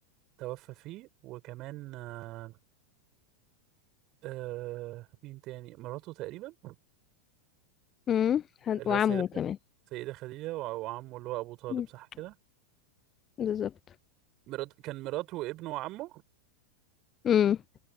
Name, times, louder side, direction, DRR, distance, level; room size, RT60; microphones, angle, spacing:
voice 1, 0.4-2.6 4.2-6.8 8.8-9.3 9.9-12.4 14.5-16.2, right 18 dB, 40° right, 5.5 m, -39 dB
voice 2, 8.1-9.6 11.7-11.8 13.4-13.7 17.2-17.6, left 9 dB, 25° left, 0.5 m, -26 dB
open air
figure-of-eight pair, 90°, 0 cm